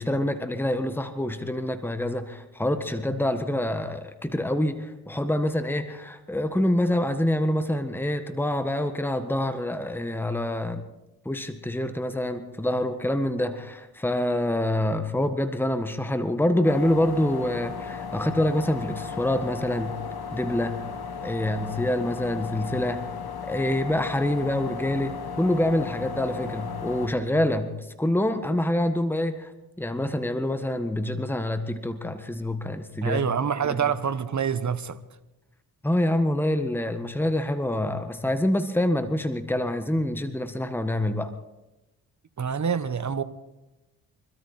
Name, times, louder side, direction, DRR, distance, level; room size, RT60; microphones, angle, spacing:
voice 1, 0.0-10.8 11.2-20.0 20.3-20.8 21.2-23.0 23.5-27.7 28.0-29.5 29.8-33.2 35.8-41.3, left 1 dB, 5° left, 1.6 m, -26 dB
sound 1, 16.6-27.1, left 6 dB, 50° left, 1.7 m, -35 dB
voice 2, 33.0-35.0 42.4-43.2, right 7 dB, 35° right, 1.3 m, -26 dB
24.5 x 13.0 x 4.4 m
hypercardioid pair, 40°, 46 cm